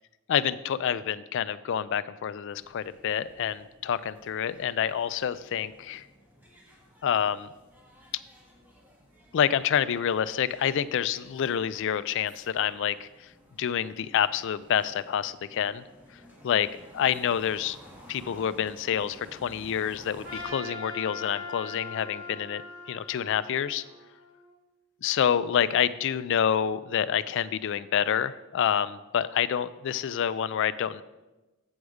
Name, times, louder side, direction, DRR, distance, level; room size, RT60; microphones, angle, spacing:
voice 1, 0.3-6.0 7.0-7.5 9.3-13.3 13.6-15.8 16.4-16.7 16.9-17.8 18.1-22.6 22.9-23.8 25.0-31.0, left 9 dB, 60° left, 15 dB, 0.3 m, -27 dB
sound 1, 2.5-20.5, equal, 10° right, 1.6 m, -54 dB
Trumpet, 20.2-24.5, left 4 dB, 65° right, 3.2 m, -41 dB
8.0 x 6.4 x 4.8 m, 1.1 s
head